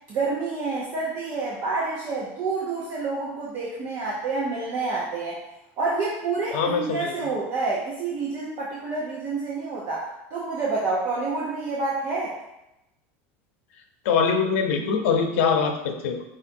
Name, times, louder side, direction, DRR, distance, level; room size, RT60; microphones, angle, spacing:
voice 1, 0.1-5.4 5.8-12.3, right 3 dB, 30° right, -6 dB, 0.7 m, -28 dB
voice 2, 6.5-7.1 14.0-16.2, left 6 dB, 80° left, 4 dB, 0.7 m, -23 dB
4.8 x 2.5 x 4.3 m, 0.89 s
cardioid pair, 180°, 7 cm